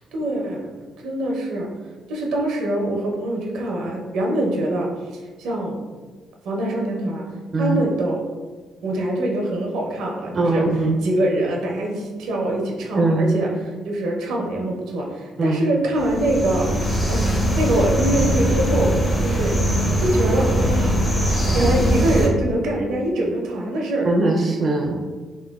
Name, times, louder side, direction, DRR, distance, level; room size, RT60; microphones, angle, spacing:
voice 1, 0.1-0.7 1.0-1.7 2.1-4.9 5.4-5.8 6.4-7.2 7.6-8.2 8.8-10.6 11.0-13.5 13.8-16.7 17.1-19.5 20.0-21.0 21.5-24.1, right 1 dB, 85° right, -1 dB, 0.6 m, -24 dB
voice 2, 10.3-11.0 12.9-13.3 15.4-15.6 24.1-25.0, right 2 dB, 40° right, 0 dB, 0.4 m, -20 dB
sound 1, 16.0-22.3, right 1 dB, 15° left, 0.7 m, -21 dB
3.2 x 2.9 x 2.3 m, 1.4 s
cardioid pair, 90°, 0 cm